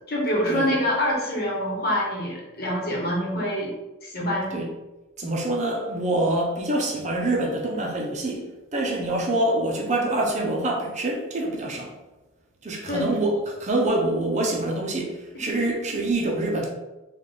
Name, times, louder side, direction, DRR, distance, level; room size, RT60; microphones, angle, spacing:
voice 1, 0.1-3.7 4.0-4.6 12.9-13.1, equal, 50° left, -3 dB, 1.1 m, -25 dB
voice 2, 5.2-8.5 8.7-11.9 12.6-16.7, right 2 dB, 35° right, 0 dB, 0.6 m, -25 dB
3.6 x 2.3 x 3.7 m, 1.0 s
head